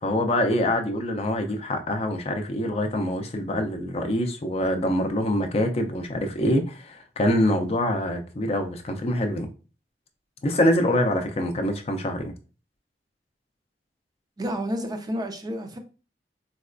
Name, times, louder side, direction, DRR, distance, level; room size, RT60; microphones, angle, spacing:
voice 1, 0.0-9.5 10.4-12.3, left 1 dB, 35° left, 6 dB, 0.4 m, -25 dB
voice 2, 14.4-15.8, equal, 25° right, 5 dB, 0.4 m, -30 dB
4.0 x 2.2 x 2.5 m, 0.34 s
head